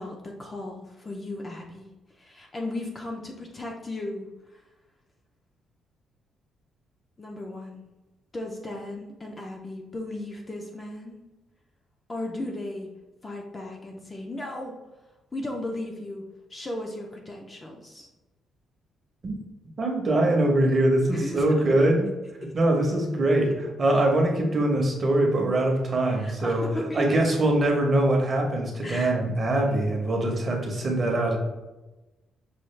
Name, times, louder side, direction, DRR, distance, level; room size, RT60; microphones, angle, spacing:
voice 1, 0.0-4.6 7.2-7.9 8.3-11.2 12.1-12.9 13.2-14.7 15.3-16.2 16.5-18.1 21.0-21.6 22.4-22.5 26.2-27.2 28.8-29.1 29.7-29.8, left 1 dB, 20° left, 1 dB, 0.4 m, -36 dB
voice 2, 19.8-22.0 22.5-26.7 26.9-31.4, right 1 dB, 30° right, 1 dB, 0.7 m, -23 dB
5.6 x 2.3 x 3.1 m, 1.1 s
cardioid pair, 170°, 0 cm